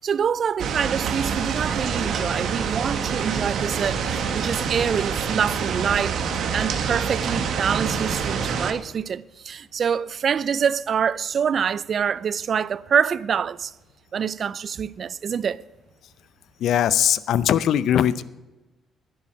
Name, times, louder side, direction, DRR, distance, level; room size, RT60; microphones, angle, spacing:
voice 1, 0.0-4.0 4.3-6.2 6.5-13.7 14.1-15.6, right 7 dB, 55° right, 0.4 m, -25 dB
sound 1, 0.6-8.7, right 6 dB, 70° right, 1.4 m, -26 dB
voice 2, 16.6-18.2, left 10 dB, 75° left, 0.5 m, -20 dB
11.0 x 10.0 x 6.0 m
cardioid pair, 90°, 0 cm